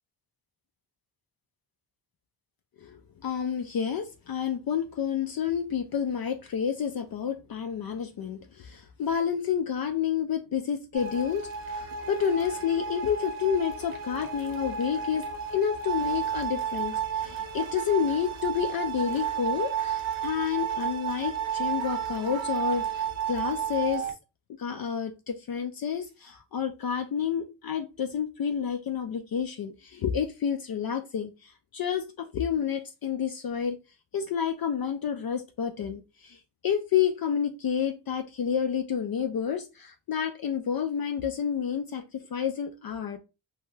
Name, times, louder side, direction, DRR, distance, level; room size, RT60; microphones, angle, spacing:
voice 1, 2.8-15.3 15.5-24.1 24.6-33.8 34.1-36.4 36.6-43.2, left 8 dB, 50° left, 0.5 m, -29 dB
sound 1, 10.9-24.1, right 8 dB, 75° right, 0.9 m, -32 dB
2.7 x 2.3 x 3.2 m
cardioid pair, 55°, 48 cm